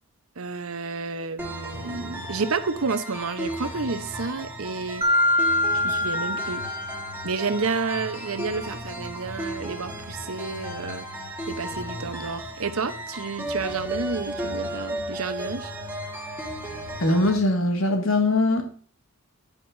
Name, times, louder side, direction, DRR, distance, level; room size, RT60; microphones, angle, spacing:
voice 1, 0.4-5.0 5.7-6.6 7.2-11.1 11.5-15.7, right 4 dB, 80° right, 1.0 m, -30 dB
sound 1, 1.4-17.4, equal, 10° right, 1.6 m, -35 dB
Mallet percussion, 5.0-7.6, left 1 dB, 30° right, 1.4 m, -24 dB
voice 2, 17.0-18.7, left 2 dB, 75° left, 2.0 m, -21 dB
10.5 x 9.1 x 2.7 m
head